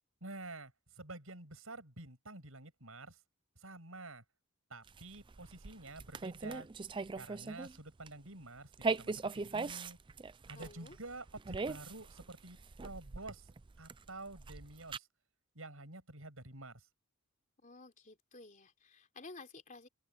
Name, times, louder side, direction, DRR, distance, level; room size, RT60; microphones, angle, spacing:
voice 1, 0.2-3.2 3.6-4.2 4.7-6.7 7.2-10.0 10.5-13.5 13.8-15.1 15.5-16.9, right 2 dB, 75° right, 7.6 m, -49 dB
Super Crunch, 4.9-7.8 8.1-8.3 8.7-15.0, right 4 dB, 20° right, 0.4 m, -40 dB
voice 2, 10.6-11.0 17.6-19.9, left 3 dB, 35° left, 3.6 m, -53 dB
head